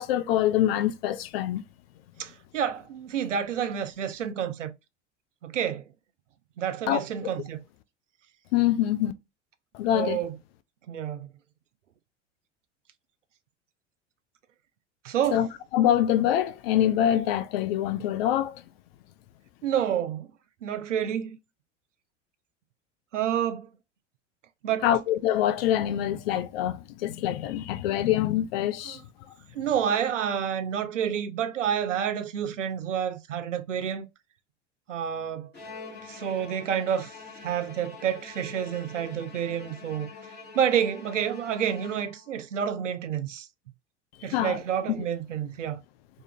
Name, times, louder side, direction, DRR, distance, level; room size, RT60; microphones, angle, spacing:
voice 1, 0.0-1.6 6.9-7.0 8.5-9.1 9.7-10.2 15.3-15.5 15.7-18.6 24.8-29.0 44.3-44.6, left 11 dB, 55° left, 0.5 m, -25 dB
voice 2, 2.2-4.7 5.4-5.8 6.6-7.6 9.9-10.4 10.9-11.3 15.0-15.5 19.6-20.3 20.6-21.4 23.1-23.7 24.6-24.9 28.9-29.0 29.5-34.1 34.9-35.5 36.0-37.1 37.4-40.1 40.5-43.5 44.2-45.8, right 9 dB, 85° right, 0.5 m, -29 dB
Bowed string instrument, 35.5-42.5, left 4 dB, 30° left, 1.3 m, -45 dB
2.7 x 2.4 x 2.6 m
figure-of-eight pair, 80°, 36 cm